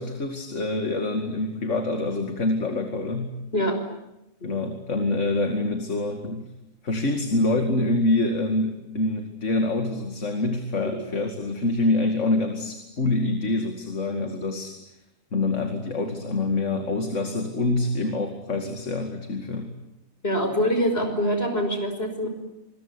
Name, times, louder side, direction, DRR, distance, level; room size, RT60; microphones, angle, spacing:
voice 1, 0.0-3.4 4.4-6.5 6.8-14.7 15.3-19.7, left 2 dB, 60° left, 6 dB, 2.6 m, -26 dB
voice 2, 20.2-22.3, equal, 45° left, 6 dB, 5.9 m, -24 dB
26.5 x 22.0 x 9.9 m, 0.88 s
omnidirectional pair, 1.4 m